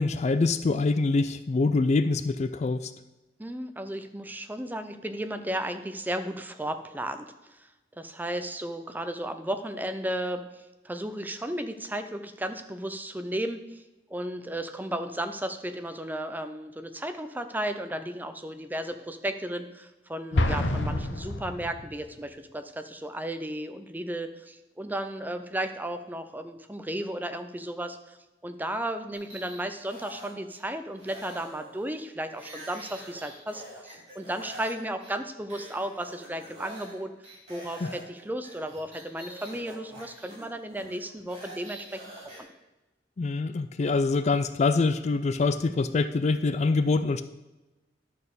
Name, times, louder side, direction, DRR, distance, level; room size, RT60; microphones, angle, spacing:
voice 1, 0.0-2.9 20.3-20.6 37.8-37.9 43.2-47.2, left 3 dB, 40° left, 12 dB, 0.4 m, -25 dB
voice 2, 3.4-7.7 8.0-10.4 10.8-13.8 14.1-28.2 28.4-37.1 37.5-42.0 42.2-42.5, right 1 dB, 10° right, 8 dB, 0.5 m, -34 dB
Explosion, 20.3-22.2, left 1 dB, 85° left, 0.9 m, -27 dB
sound 1, 29.1-30.6 31.0-34.7 35.0-35.1 35.5-37.0 37.2-42.4, right 1 dB, 40° right, 3.7 m, -46 dB
11.0 x 4.3 x 6.7 m, 1.1 s
head